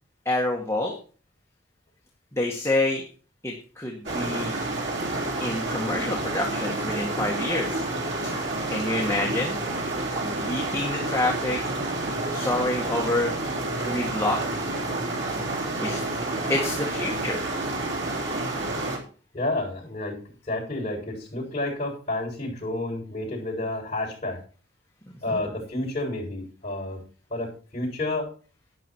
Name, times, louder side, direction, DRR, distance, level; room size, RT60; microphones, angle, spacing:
voice 1, 0.3-0.9 2.3-3.0 3.4-4.5 5.4-7.8 8.7-9.6 10.2-11.6 12.3-13.4 13.8-14.4 15.8-16.0 16.5-17.4 25.3-25.4, left 2 dB, 15° left, -1 dB, 1.8 m, -27 dB
sound 1, 4.0-19.0, right 2 dB, 70° right, 3.8 m, -29 dB
voice 2, 19.3-20.2 20.5-24.4 25.2-27.0 27.3-28.3, left 2 dB, 30° left, -3 dB, 7.3 m, -30 dB
12.0 x 9.9 x 4.6 m, 0.39 s
head